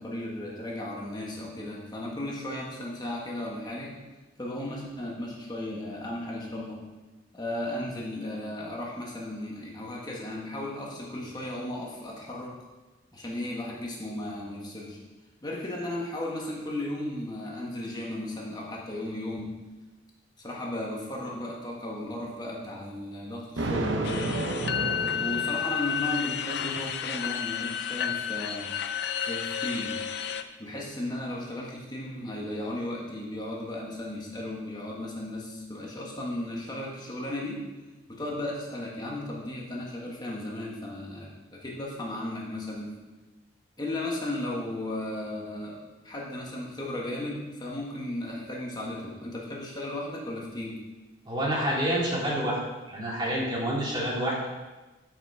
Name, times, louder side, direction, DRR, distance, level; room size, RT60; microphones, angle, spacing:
voice 1, 0.0-3.9 4.4-6.8 7.3-12.5 13.1-15.0 15.4-19.5 20.4-24.3 25.2-28.7 29.2-30.0 30.6-37.6 38.1-42.9 43.8-45.8 46.0-50.8, left 1 dB, 20° left, -3 dB, 1.6 m, -35 dB
Thunder, 23.6-26.1, right 2 dB, 70° right, 1.0 m, -31 dB
sound 1, 24.0-30.4, left 8 dB, 55° left, 0.5 m, -31 dB
voice 2, 51.3-52.6 52.9-54.5, right 1 dB, 20° right, -4 dB, 2.4 m, -28 dB
12.0 x 6.0 x 4.9 m, 1.2 s
head